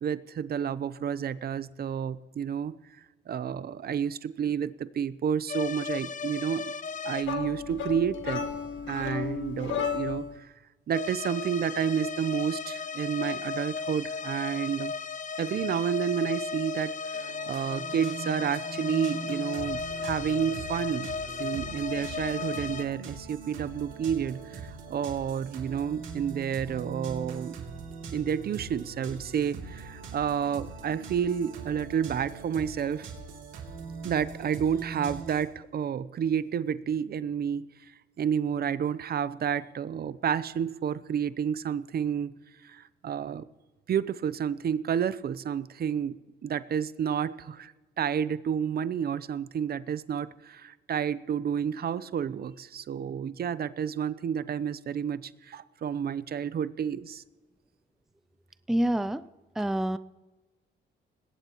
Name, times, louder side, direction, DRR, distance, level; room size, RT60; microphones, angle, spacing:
voice 1, 0.0-2.8 3.3-6.7 7.0-8.5 8.9-10.2 10.9-14.9 15.4-27.6 28.1-33.1 34.0-37.7 38.2-42.3 42.6-43.5 43.9-46.2 46.4-57.2, right 8 dB, 50° right, 16 dB, 0.7 m, -30 dB
sound 1, 5.5-7.3 10.9-22.9, left 5 dB, 40° left, 0.8 m, -35 dB
sound 2, 7.2-10.4, left 7 dB, 70° left, 1.7 m, -33 dB
sound 3, 17.1-35.4, right 4 dB, 80° right, 2.9 m, -42 dB
voice 2, 58.7-59.3 59.6-60.0, right 1 dB, ahead, 14 dB, 0.5 m, -27 dB
20.0 x 17.0 x 3.0 m, 1.2 s
cardioid pair, 90°, 20 cm